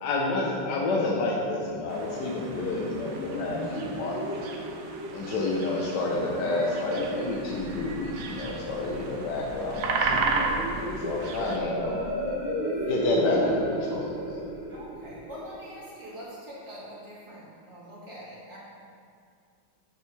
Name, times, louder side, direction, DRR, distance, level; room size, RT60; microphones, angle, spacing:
voice 1, 0.0-4.2 5.1-12.0 12.8-14.4, left 2 dB, 65° left, -2 dB, 1.3 m, -29 dB
sound 1, 1.9-11.6, right 4 dB, 70° right, 0.8 m, -34 dB
sound 2, 2.6-16.2, equal, 45° left, 2.2 m, -35 dB
Thunder / Rain, 7.0-15.4, right 1 dB, 5° left, 1.4 m, -44 dB
voice 2, 11.4-11.9 12.7-12.9 14.7-18.6, equal, 15° right, -8 dB, 1.8 m, -44 dB
7.1 x 6.9 x 3.2 m, 2.3 s
omnidirectional pair, 2.1 m